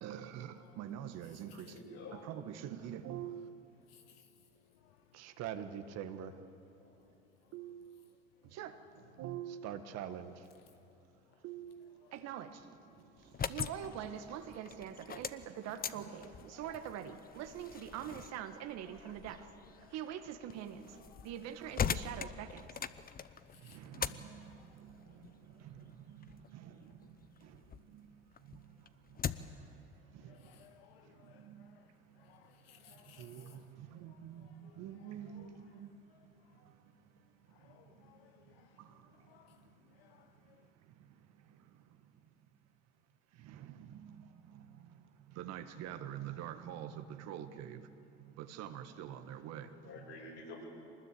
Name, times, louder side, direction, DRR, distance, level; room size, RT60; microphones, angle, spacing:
voice 1, 0.0-1.7 2.3-3.5 5.4-6.3 7.5-7.8 8.6-8.7 9.2-10.3 11.4-11.8 12.1-12.5 13.5-16.3 16.6-19.4 19.9-20.8 21.2-22.5 33.2-33.4 34.0-34.4 34.8-35.5 45.4-47.8 48.4-49.7, right 10 dB, 60° right, 1.7 m, -43 dB
voice 2, 1.5-2.2 6.8-6.9 49.7-50.7, left 3 dB, 60° left, 7.6 m, -50 dB
sound 1, 13.2-27.9 28.3-29.7, left 7 dB, 30° left, 0.9 m, -42 dB
voice 3, 30.3-31.8 32.2-33.6 34.4-34.7 35.4-35.5 37.6-38.3 38.6-38.7 39.3-39.6 40.0-40.3, left 11 dB, 80° left, 0.8 m, -62 dB
24.0 x 20.0 x 8.4 m
hypercardioid pair, 70°, 30 cm